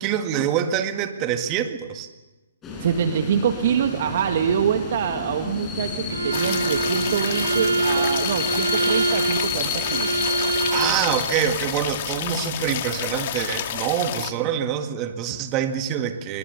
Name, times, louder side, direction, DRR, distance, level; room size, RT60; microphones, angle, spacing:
voice 1, 0.0-2.1 10.7-16.4, right 9 dB, 25° right, 7 dB, 1.9 m, -25 dB
sound 1, 2.6-13.9, left 4 dB, 15° left, 7.1 m, -32 dB
voice 2, 2.8-10.1, right 8 dB, 50° right, 5 dB, 2.0 m, -25 dB
Bowed string instrument, 6.1-11.0, right 3 dB, 85° right, 2.0 m, -25 dB
sound 2, 6.3-14.3, left 11 dB, 40° left, 2.0 m, -30 dB
27.0 x 24.0 x 6.9 m, 1.1 s
hypercardioid pair, 140°, 0 cm